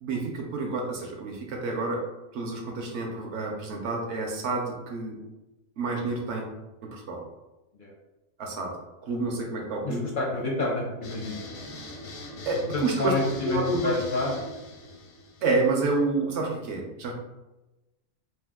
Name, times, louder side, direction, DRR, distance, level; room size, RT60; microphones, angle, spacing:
voice 1, 0.0-2.0 2.3-5.2 5.8-6.5 6.9-7.2 8.4-8.7 9.0-10.0 12.4-13.1 13.4-13.9 15.4-17.1, right 3 dB, 65° right, 1 dB, 0.8 m, -29 dB
voice 2, 9.8-11.4 12.5-14.3, left 2 dB, 55° left, -2 dB, 0.5 m, -29 dB
sound 1, 11.0-16.0, left 1 dB, 85° left, 1.1 m, -41 dB
2.8 x 2.2 x 3.4 m, 1.0 s
omnidirectional pair, 1.4 m